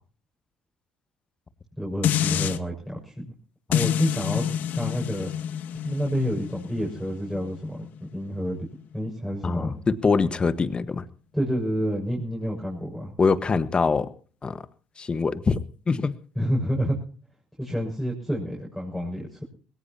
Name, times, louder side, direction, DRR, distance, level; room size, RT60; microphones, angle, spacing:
voice 1, 1.8-3.2 3.7-4.5 4.7-5.3 5.8-7.8 8.1-8.7 8.9-9.7 11.3-13.1 16.4-17.0 17.6-19.4, equal, ahead, -3 dB, 6.5 m, -28 dB
sound 1, 2.0-2.6 3.7-8.9 9.3-9.4, left 10 dB, 60° left, 1.0 m, -28 dB
voice 2, 9.4-11.0 13.2-14.1 14.4-14.6 15.0-15.6 15.9-16.1, left 4 dB, 30° left, 14 dB, 1.4 m, -23 dB
20.5 x 18.5 x 2.9 m, 0.40 s
hypercardioid pair, 60°, 3 cm